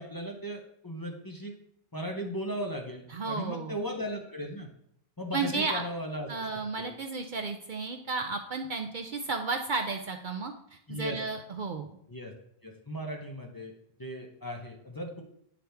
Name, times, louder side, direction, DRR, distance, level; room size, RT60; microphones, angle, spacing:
voice 1, 0.0-1.5 1.9-4.7 5.2-6.5 6.8-6.9 10.9-11.2 12.1-12.3 12.6-13.7 14.0-15.2, equal, 20° left, 1 dB, 0.7 m, -37 dB
voice 2, 3.1-3.8 5.3-5.8 6.3-11.9, right 4 dB, 55° right, 4 dB, 0.6 m, -33 dB
9.2 x 5.0 x 3.4 m, 0.70 s
omnidirectional pair, 1.1 m